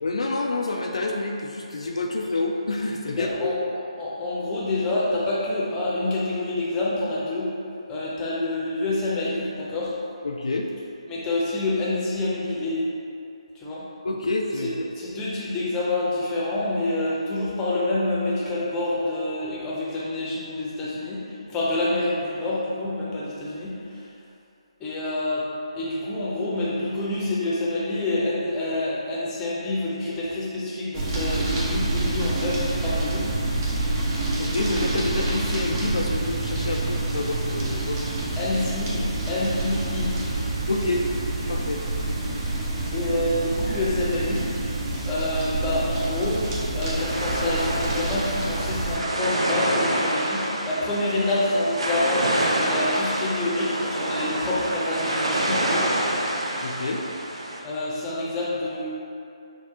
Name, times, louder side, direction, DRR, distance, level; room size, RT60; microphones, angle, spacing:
voice 1, 0.0-3.5 10.2-10.7 14.0-14.7 34.4-38.0 40.7-41.0 41.5-41.8 56.6-57.0, left 2 dB, 70° left, 1 dB, 0.3 m, -28 dB
voice 2, 3.1-7.5 7.9-9.9 11.1-12.9 13.5-13.8 15.0-24.1 24.8-25.4 25.7-33.3 38.3-40.1 42.9-44.6 45.0-55.9 57.6-58.9, left 2 dB, 15° left, -7 dB, 0.7 m, -27 dB
sound 1, 30.9-49.0, right 2 dB, 20° right, 0.6 m, -27 dB
sound 2, 47.0-57.6, right 1 dB, 65° right, 0.6 m, -27 dB
5.9 x 2.2 x 2.7 m, 2.6 s
figure-of-eight pair, 150°, 3 cm